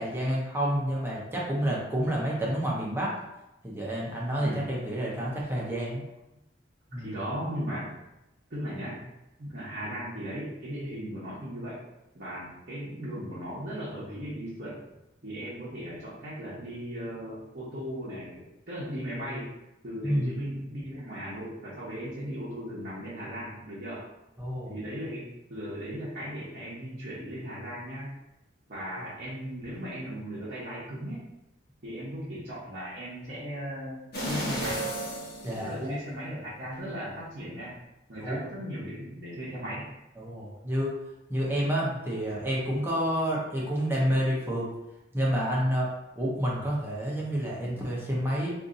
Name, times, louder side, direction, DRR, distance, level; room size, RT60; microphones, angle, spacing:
voice 1, 0.0-3.1 3.6-6.0 6.9-7.1 20.0-20.4 24.4-24.7 29.0-29.1 35.4-36.0 38.2-38.4 40.2-40.9 41.3-44.7 45.1-45.9 46.2-48.5, equal, 10° right, -5 dB, 0.6 m, -29 dB
voice 2, 7.0-7.9 8.5-9.0 9.4-11.8 12.1-14.8 15.2-19.5 19.8-24.0 24.7-28.1 28.7-31.3 31.8-34.9 35.6-37.7 38.1-39.8, equal, 50° right, -10 dB, 0.9 m, -37 dB
sound 1, 34.1-36.3 36.7-36.8, right 1 dB, 55° left, 0.9 m, -33 dB
2.6 x 2.5 x 3.8 m, 0.91 s
head